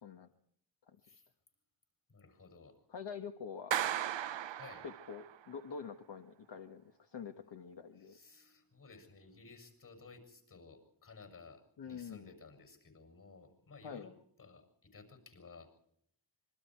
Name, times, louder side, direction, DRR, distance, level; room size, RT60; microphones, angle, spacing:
voice 1, 2.1-2.8 4.5-4.9 8.0-14.1 14.4-15.7, left 4 dB, 45° left, 7 dB, 7.3 m, -56 dB
voice 2, 2.9-3.7 4.8-8.2 11.8-12.3 13.8-14.1, left 6 dB, 70° left, 6 dB, 1.5 m, -46 dB
Clapping, 3.7-5.4, right 11 dB, 80° right, 0.8 m, -36 dB
26.5 x 23.5 x 4.6 m, 0.67 s
wide cardioid pair, 125°, 44 cm